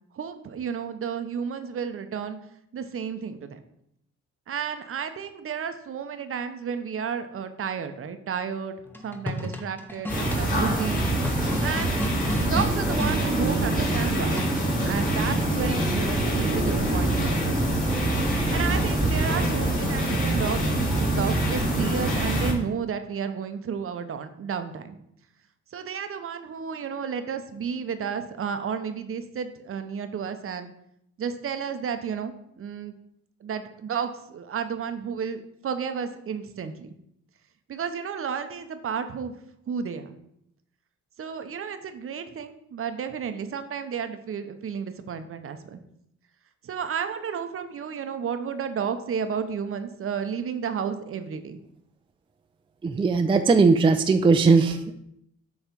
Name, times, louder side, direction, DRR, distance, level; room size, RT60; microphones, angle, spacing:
voice 1, 0.1-2.4 2.7-3.6 4.5-11.0 11.6-12.0 12.4-14.4 14.8-16.2 16.5-17.8 18.2-25.0 25.7-30.7 31.2-32.9 33.4-36.9 37.7-39.3 39.7-40.2 41.2-45.8 46.6-51.6, right 7 dB, 45° right, 9 dB, 0.7 m, -32 dB
sound 1, 8.9-13.2 14.4-14.8, left 1 dB, 5° left, 0.9 m, -33 dB
sound 2, 10.1-22.5, right 1 dB, 25° left, 2.0 m, -24 dB
voice 2, 52.8-54.9, right 4 dB, 15° right, 7 dB, 0.4 m, -19 dB
7.3 x 3.2 x 5.3 m, 0.74 s
cardioid pair, 90°, 30 cm